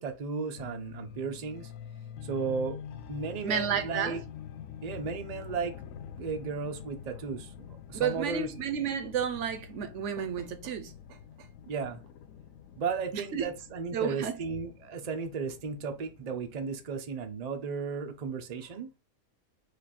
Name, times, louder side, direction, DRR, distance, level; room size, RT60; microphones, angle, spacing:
voice 1, 0.0-1.7 2.2-2.8 3.1-4.2 4.8-5.7 6.2-7.5 7.9-8.5 11.7-12.0 12.8-18.9, right 5 dB, 85° right, 0.3 m, -34 dB
sound 1, 0.6-16.9, left 8 dB, 70° left, 0.9 m, -46 dB
voice 2, 3.4-4.2 7.9-10.9 13.1-13.5 13.9-14.4, right 7 dB, 65° right, 0.8 m, -31 dB
4.9 x 2.4 x 4.2 m
omnidirectional pair, 1.6 m